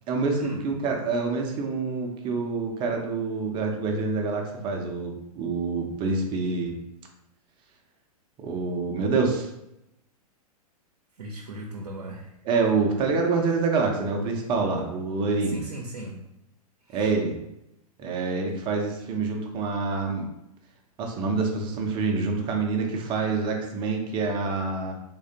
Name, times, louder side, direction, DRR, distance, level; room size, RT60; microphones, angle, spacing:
voice 1, 0.1-6.7 8.4-9.5 12.5-15.6 16.9-17.3 18.0-20.3 21.0-24.9, right 4 dB, 25° right, 2 dB, 0.7 m, -26 dB
voice 2, 11.2-12.3 13.4-13.5 15.4-16.2 16.8-17.1, right 1 dB, 70° right, 0 dB, 0.7 m, -38 dB
3.7 x 3.2 x 2.8 m, 0.84 s
figure-of-eight pair, 105°, 20 cm